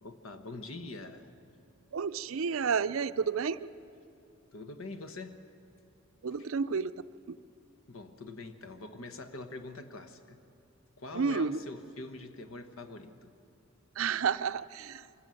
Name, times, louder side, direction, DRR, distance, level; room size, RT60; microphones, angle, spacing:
voice 1, 0.0-1.3 2.3-2.4 4.5-5.4 6.4-6.5 7.9-10.4 11.0-13.3, left 2 dB, 70° left, 8 dB, 1.3 m, -44 dB
voice 2, 1.9-3.7 6.2-6.9 7.3-7.4 11.1-11.6 14.0-15.1, right 6 dB, 70° right, 14 dB, 0.5 m, -31 dB
24.0 x 16.0 x 7.7 m, 2.5 s
head